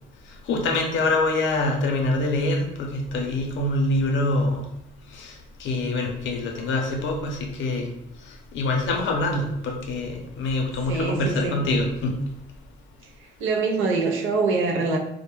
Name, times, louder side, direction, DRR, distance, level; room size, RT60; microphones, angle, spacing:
voice 1, 0.5-4.7 5.1-7.9 8.3-12.2, left 2 dB, 75° left, 1 dB, 0.6 m, -25 dB
voice 2, 10.9-11.7 13.0-15.0, right 3 dB, 90° right, 3 dB, 0.5 m, -25 dB
2.1 x 2.1 x 2.9 m, 0.81 s
cardioid pair, 90°, 20 cm